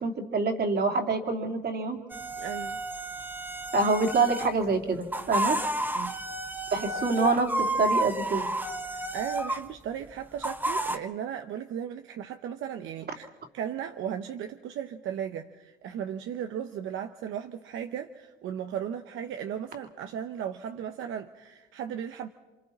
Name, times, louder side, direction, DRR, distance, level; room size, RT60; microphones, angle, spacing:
voice 1, 0.0-2.0 3.7-5.6 6.7-7.5 7.8-8.5, right 3 dB, 55° right, 3 dB, 2.7 m, -26 dB
sound 1, 2.1-4.5 5.0-9.7 10.4-11.0, right 1 dB, 10° right, 1.3 m, -31 dB
voice 2, 2.4-2.8 5.9-6.1 6.8-7.0 8.9-13.3 13.5-22.3, right 9 dB, 80° right, 6 dB, 0.9 m, -36 dB
28.5 x 26.0 x 4.3 m, 1.2 s
cardioid pair, 90°, 20 cm